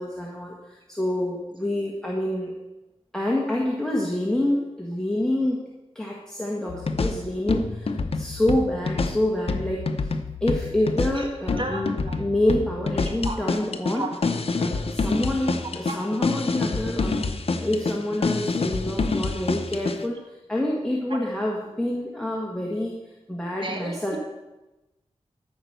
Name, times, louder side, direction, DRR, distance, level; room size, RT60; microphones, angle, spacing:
voice 1, 0.0-2.5 3.1-5.6 6.0-10.1 10.4-11.9 12.2-14.0 14.6-17.2 17.6-23.0 23.3-24.2, left 1 dB, 5° left, -3 dB, 1.7 m, -27 dB
sound 1, 6.7-20.0, left 3 dB, 60° left, 0.8 m, -27 dB
voice 2, 11.6-12.2 13.1-13.4 14.0-14.1 23.6-24.2, right 2 dB, 45° right, 2 dB, 1.9 m, -33 dB
13.5 x 5.2 x 6.7 m, 1.0 s
wide cardioid pair, 95°, 11 cm